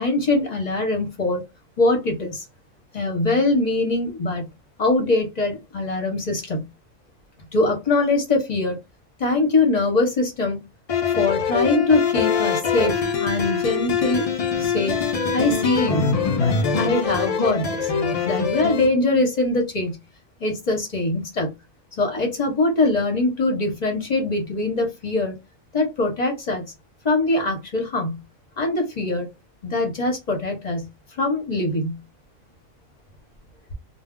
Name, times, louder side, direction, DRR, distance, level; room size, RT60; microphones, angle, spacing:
voice 1, 0.0-1.4 1.8-2.4 2.9-4.5 4.8-6.7 7.5-8.8 9.2-10.6 11.2-14.3 14.6-15.0 15.3-17.9 18.2-20.0 20.4-21.5 22.0-25.4 25.7-26.7 27.0-28.2 28.6-29.3 29.6-30.9 31.2-32.0, left 2 dB, 40° left, 0.7 m, -22 dB
sound 1, 10.9-18.9, left 6 dB, 65° left, 0.3 m, -23 dB
2.2 x 2.0 x 3.5 m
omnidirectional pair, 1.3 m